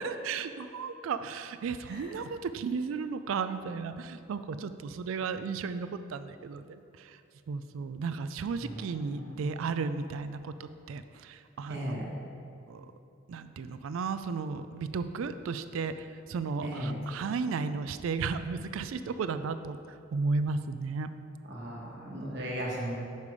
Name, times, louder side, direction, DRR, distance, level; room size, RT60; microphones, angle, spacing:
voice 1, 0.0-7.2 7.5-11.9 12.7-12.8 13.3-19.8 20.1-21.1, right 4 dB, 85° right, 11 dB, 0.3 m, -34 dB
voice 2, 9.1-9.4 11.7-12.0 16.6-17.0 21.5-22.9, equal, 60° right, -4 dB, 1.3 m, -36 dB
6.6 x 5.4 x 4.8 m, 2.6 s
head